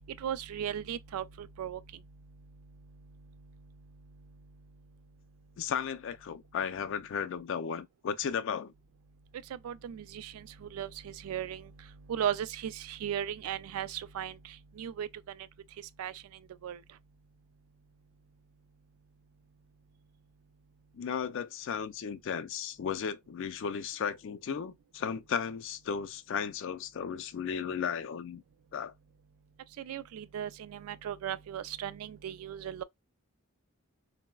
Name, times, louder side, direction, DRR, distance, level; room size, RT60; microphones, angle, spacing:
voice 1, 0.2-1.8 9.5-11.7 12.1-14.4 14.8-15.1 16.0-16.1 16.6-16.8 29.8-32.8, right 9 dB, 80° right, 0.3 m, -36 dB
voice 2, 5.6-8.7 20.9-28.4 28.7-28.9, left 7 dB, 60° left, 0.3 m, -35 dB
3.8 x 2.0 x 2.2 m
head